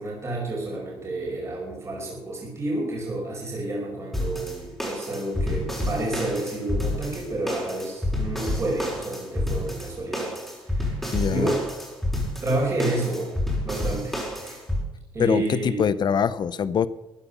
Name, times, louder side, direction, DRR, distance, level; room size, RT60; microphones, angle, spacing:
voice 1, 0.0-10.4 10.6-11.6 12.4-13.3 13.6-14.6 15.1-15.8, right 2 dB, 30° right, -3 dB, 5.4 m, -30 dB
sound 1, 4.1-14.8, left 1 dB, 5° left, 5.2 m, -29 dB
voice 2, 11.1-11.5 15.2-16.9, left 7 dB, 50° left, 17 dB, 0.7 m, -23 dB
14.5 x 9.6 x 7.0 m, 1.0 s
cardioid pair, 120°, 10 cm